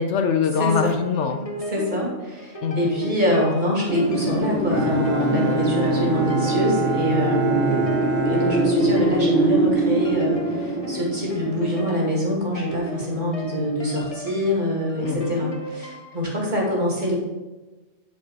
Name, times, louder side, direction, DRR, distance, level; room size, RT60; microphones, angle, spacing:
voice 1, 0.0-1.4 2.6-2.9 15.0-15.4, left 6 dB, 70° left, 6 dB, 0.9 m, -23 dB
voice 2, 0.6-0.9 1.7-17.1, equal, 35° right, -3 dB, 2.6 m, -25 dB
sound 1, 0.9-16.2, equal, 30° left, 1.1 m, -36 dB
Wind, 3.9-12.6, right 1 dB, 50° left, 2.3 m, -24 dB
Bowed string instrument, 4.7-9.5, right 5 dB, 60° right, 2.7 m, -28 dB
10.5 x 4.8 x 4.7 m, 1.2 s
omnidirectional pair, 1.3 m